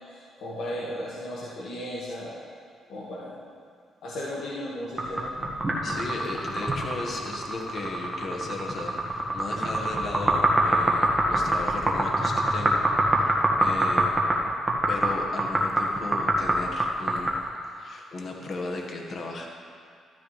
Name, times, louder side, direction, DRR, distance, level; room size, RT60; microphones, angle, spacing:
voice 1, 0.1-2.4 2.9-3.4 4.0-5.5, equal, 75° left, -6 dB, 2.0 m, -35 dB
sound 1, 5.0-17.4, right 1 dB, 20° right, 1.7 m, -24 dB
voice 2, 5.8-14.1 14.9-17.4 17.7-19.5, left 2 dB, 50° left, 1 dB, 1.7 m, -36 dB
13.5 x 12.5 x 3.4 m, 2.2 s
cardioid pair, 90°, 0 cm